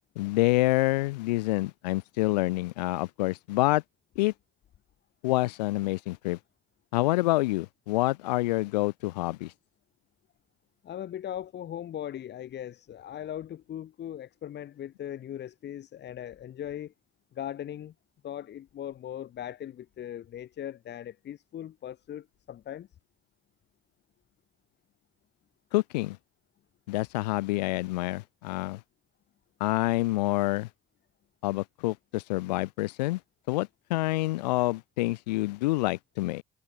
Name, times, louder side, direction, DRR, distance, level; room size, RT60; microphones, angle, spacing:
voice 1, 0.1-3.8 4.1-4.3 5.2-6.4 6.9-9.5 25.7-26.2 26.9-28.8 29.6-30.7 31.4-33.2 33.5-36.4, left 20 dB, 75° left, 1.3 m, -27 dB
voice 2, 10.8-16.9 17.3-17.9 18.2-22.9, left 11 dB, 55° left, 4.5 m, -39 dB
figure-of-eight pair, 50°, 21 cm